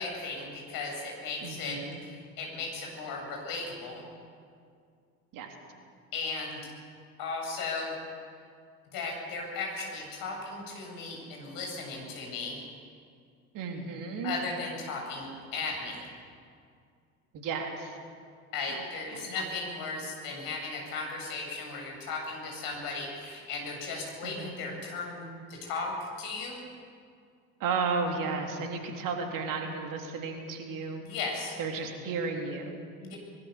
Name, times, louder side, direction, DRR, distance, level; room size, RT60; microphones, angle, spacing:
voice 1, 0.0-4.0 6.1-6.6 7.2-8.0 8.9-12.6 14.2-16.1 18.5-26.6 31.0-31.6 33.0-33.2, left 3 dB, 50° left, 0 dB, 7.8 m, -36 dB
voice 2, 1.4-2.0 5.3-5.5 13.5-14.4 17.3-18.0 18.7-19.5 24.2-24.5 27.6-31.1 31.6-32.8, right 4 dB, 45° right, 3 dB, 3.4 m, -34 dB
24.0 x 21.5 x 6.8 m, 2.2 s
figure-of-eight pair, 65°, 44 cm